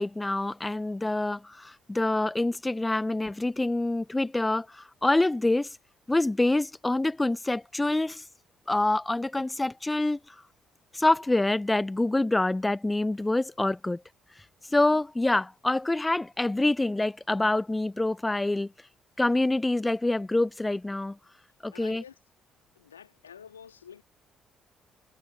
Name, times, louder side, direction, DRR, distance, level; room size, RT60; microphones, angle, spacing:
voice 1, 0.0-5.7 6.1-8.2 8.7-10.3 10.9-14.0 14.7-18.7 19.2-21.2 21.6-22.0, left 2 dB, 15° left, 1.0 m, -26 dB
voice 2, 21.7-22.2 22.8-24.0, left 8 dB, 85° left, 3.9 m, -48 dB
figure-of-eight pair, 45°, 0 cm